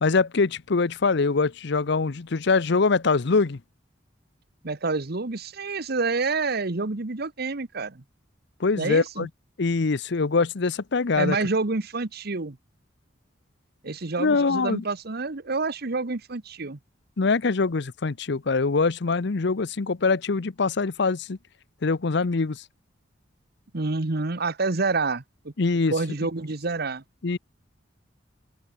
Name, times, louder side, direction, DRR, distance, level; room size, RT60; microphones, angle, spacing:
voice 1, 0.0-3.6 8.6-9.3 9.6-11.4 14.2-14.8 17.2-21.4 21.8-22.6 25.6-25.9 27.2-27.4, left 4 dB, 65° left, 0.7 m, -23 dB
voice 2, 4.6-8.0 8.8-9.3 11.1-12.6 13.8-16.8 23.7-25.5 25.9-27.0, right 3 dB, 55° right, 1.2 m, -28 dB
open air
head